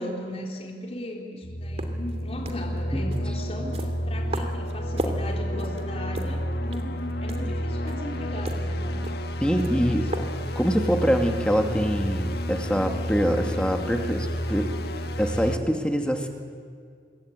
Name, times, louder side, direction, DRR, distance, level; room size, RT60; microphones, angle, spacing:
voice 1, 0.0-9.0 9.4-10.1, left 1 dB, 35° left, 1 dB, 3.5 m, -38 dB
sound 1, 1.4-15.6, equal, 65° left, 1.6 m, -30 dB
sound 2, 1.6-10.8, right 1 dB, 35° right, 2.7 m, -38 dB
voice 2, 9.4-10.1 10.6-14.7 15.2-16.3, equal, 5° left, 4 dB, 2.4 m, -24 dB
26.0 x 22.5 x 9.2 m, 2.1 s
head